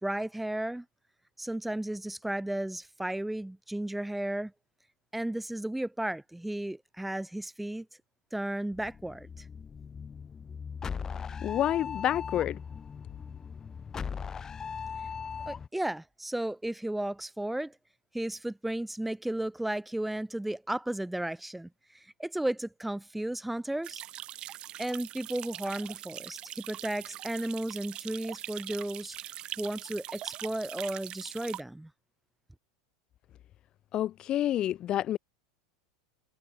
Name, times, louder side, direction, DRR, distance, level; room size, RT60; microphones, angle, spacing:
voice 1, 0.0-0.8 1.4-4.5 5.1-7.9 8.3-9.5 15.5-17.7 18.1-24.0 24.8-31.9, right 1 dB, 5° right, 4.7 m, -34 dB
sound 1, 8.7-15.7, left 6 dB, 25° left, 2.1 m, -39 dB
voice 2, 11.4-12.6 33.9-35.2, left 12 dB, 40° left, 0.4 m, -28 dB
sound 2, 23.8-31.6, right 13 dB, 40° right, 6.4 m, -42 dB
hypercardioid pair, 105°, 2 cm